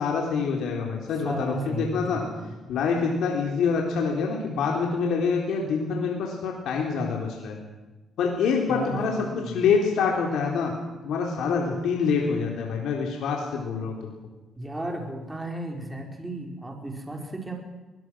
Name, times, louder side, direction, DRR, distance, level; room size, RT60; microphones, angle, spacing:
voice 1, 0.0-2.2 2.7-7.6 8.2-9.1 9.5-10.7 11.0-14.2, left 5 dB, 80° left, 0 dB, 3.7 m, -26 dB
voice 2, 1.2-2.5 8.7-9.6 14.6-17.6, right 2 dB, 15° right, 2 dB, 4.7 m, -34 dB
23.0 x 19.0 x 6.3 m, 1.1 s
cardioid pair, 90°, 0 cm